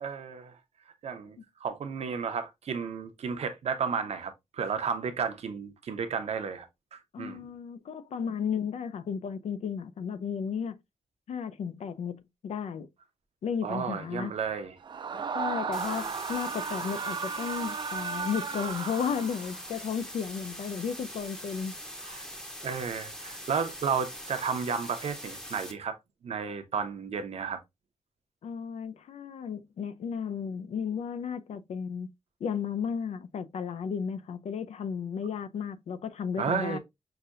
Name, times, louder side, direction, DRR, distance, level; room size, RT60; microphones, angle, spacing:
voice 1, 0.0-0.5 1.0-6.7 6.9-7.5 13.6-14.8 22.0-22.3 22.6-26.0 26.2-27.6 36.4-36.8, right 6 dB, 70° right, 0.8 m, -33 dB
voice 2, 7.1-10.8 11.3-12.9 13.4-14.3 15.1-21.7 28.4-32.1 32.4-36.8, left 7 dB, 80° left, 0.5 m, -34 dB
Screaming, 14.8-19.7, right 6 dB, 45° right, 0.4 m, -35 dB
sound 1, 15.7-25.7, equal, 5° left, 0.7 m, -43 dB
5.8 x 2.7 x 2.5 m
wide cardioid pair, 155°, 11 cm